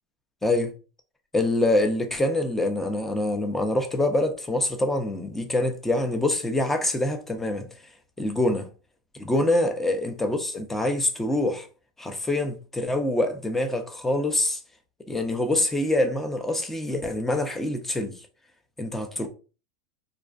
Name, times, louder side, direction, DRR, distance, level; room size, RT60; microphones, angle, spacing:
voice 1, 0.4-0.7 1.3-7.7 8.2-8.7 9.2-11.7 12.0-14.6 15.1-18.1 18.8-19.3, left 1 dB, 10° left, 0.4 m, -25 dB
2.4 x 2.3 x 2.2 m
supercardioid pair, 135°, 3 cm